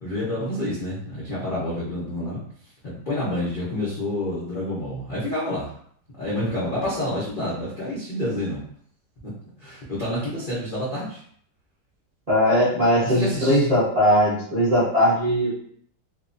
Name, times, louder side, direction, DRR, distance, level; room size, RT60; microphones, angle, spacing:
voice 1, 0.0-2.4 2.8-5.7 6.1-8.6 9.2-11.2 13.0-13.7, left 1 dB, 75° left, -8 dB, 0.4 m, -28 dB
voice 2, 12.3-15.5, equal, 30° right, -10 dB, 0.7 m, -19 dB
3.0 x 2.1 x 2.5 m, 0.62 s
omnidirectional pair, 2.0 m